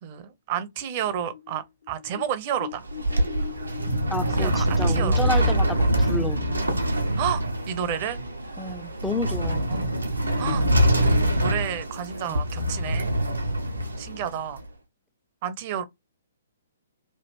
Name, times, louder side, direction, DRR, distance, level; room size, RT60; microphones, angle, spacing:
voice 1, 0.0-2.9 4.4-5.4 7.2-8.2 9.7-9.9 10.4-10.7 11.0-13.1 14.0-14.6 15.4-15.8, right 9 dB, 35° right, 0.6 m, -31 dB
sound 1, 1.1-6.9 7.3-7.4 7.8-8.3 8.7-8.8 9.5-9.6 9.8-10.0 10.3-11.5, left 10 dB, 65° left, 0.6 m, -41 dB
sound 2, 2.7-14.6, equal, 80° right, 0.8 m, -24 dB
voice 2, 4.1-6.5 8.6-9.7 12.3-12.4, left 1 dB, 5° left, 0.4 m, -30 dB
3.1 x 2.4 x 3.3 m
figure-of-eight pair, 120°, 0 cm